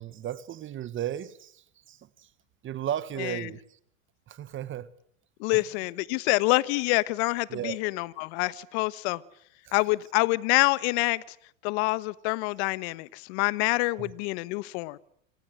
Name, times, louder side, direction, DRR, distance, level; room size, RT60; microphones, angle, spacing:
voice 1, 0.0-2.3 2.6-3.6 4.3-4.9 5.5-5.6 7.5-7.8 9.7-9.8 14.0-14.1, right 11 dB, 30° right, 16 dB, 1.5 m, -35 dB
voice 2, 5.4-9.2 9.7-11.2 11.6-15.0, left 23 dB, 55° left, 18 dB, 1.3 m, -26 dB
27.0 x 26.5 x 7.8 m, 0.67 s
hypercardioid pair, 110°, 40 cm